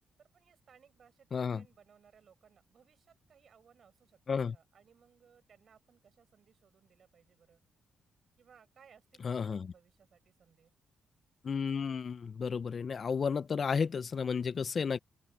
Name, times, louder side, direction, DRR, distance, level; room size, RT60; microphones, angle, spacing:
voice 1, 0.2-7.6 8.4-10.8, right 7 dB, 50° right, 7.3 m, -64 dB
voice 2, 1.3-1.6 4.3-4.6 9.2-9.7 11.4-15.0, left 6 dB, 40° left, 0.4 m, -32 dB
open air
cardioid pair, 145°, 0 cm